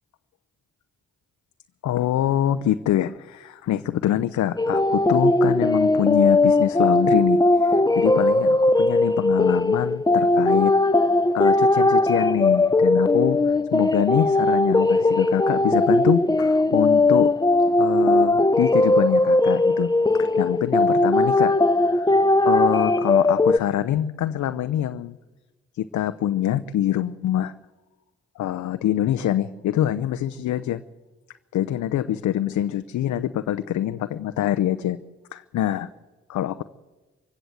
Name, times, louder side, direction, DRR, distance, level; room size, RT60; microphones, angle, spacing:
voice 1, 1.8-10.7 11.3-17.3 17.8-22.2 22.4-25.2 25.8-27.5 28.4-30.8 31.5-35.0 35.3-35.9 36.3-36.6, left 11 dB, 75° left, 11 dB, 0.7 m, -25 dB
sound 1, 4.6-23.6, left 2 dB, 15° left, 0.9 m, -19 dB
24.5 x 16.0 x 8.0 m, 1.2 s
supercardioid pair, 45°, 29 cm